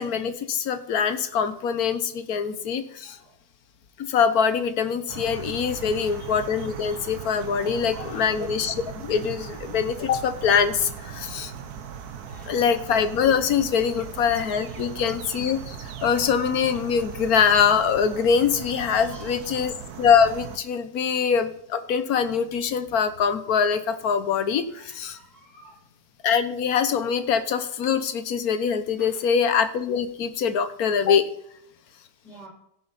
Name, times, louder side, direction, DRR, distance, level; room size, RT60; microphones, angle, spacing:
voice 1, 0.0-3.2 4.0-11.5 12.4-25.2 26.2-31.2, left 7 dB, 65° left, 11 dB, 1.4 m, -23 dB
sound 1, 5.1-20.6, right 7 dB, 70° right, 1.4 m, -38 dB
voice 2, 5.7-6.3 7.6-8.7 12.2-12.7 13.9-14.1 14.7-15.0 17.0-17.2 18.9-19.5 24.7-25.8 29.0-29.3 32.2-32.5, left 1 dB, 30° left, -4 dB, 5.9 m, -48 dB
15.5 x 6.9 x 4.1 m, 0.73 s
omnidirectional pair, 1.7 m